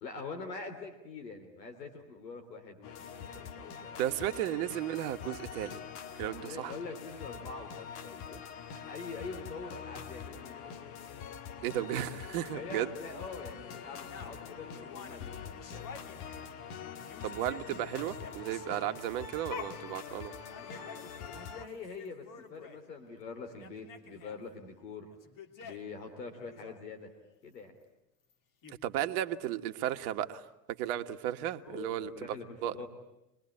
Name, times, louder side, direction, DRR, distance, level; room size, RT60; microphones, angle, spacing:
voice 1, 0.0-4.0 6.4-10.5 12.4-15.9 20.5-25.1 25.6-27.1 27.4-27.7 31.7-32.9, left 4 dB, 85° left, 5 dB, 3.2 m, -45 dB
sound 1, 2.8-21.7, left 7 dB, 65° left, 1.8 m, -45 dB
voice 2, 4.0-5.8 6.1-6.7 11.6-12.9 17.2-20.3 28.7-30.4 30.8-32.4 32.6-32.7, right 12 dB, 65° right, 8 dB, 1.6 m, -34 dB
sound 2, 14.1-16.7 17.0-22.8 23.2-23.3 23.5-24.4 25.1-26.0 26.4-26.7 28.3-28.4 28.6-28.8, left 5 dB, 40° left, 2.5 m, -49 dB
25.0 x 21.0 x 9.9 m, 0.89 s
hypercardioid pair, 80°, 48 cm